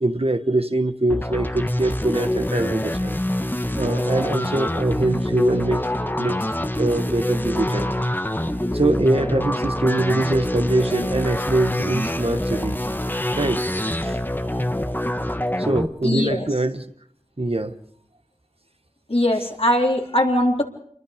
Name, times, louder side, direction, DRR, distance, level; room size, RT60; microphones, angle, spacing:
voice 1, 0.0-3.2 3.8-6.5 6.7-7.9 8.7-12.8 13.3-13.6 14.0-14.2 15.5-16.8 17.4-17.7 19.3-19.5, right 2 dB, 45° right, 8 dB, 1.5 m, -23 dB
sound 1, 1.1-15.9, left 1 dB, 15° left, 1.3 m, -25 dB
voice 2, 16.0-16.5 19.1-20.6, left 1 dB, 45° left, 1 dB, 3.8 m, -20 dB
28.5 x 22.0 x 5.1 m, 0.64 s
wide cardioid pair, 40°, 13 cm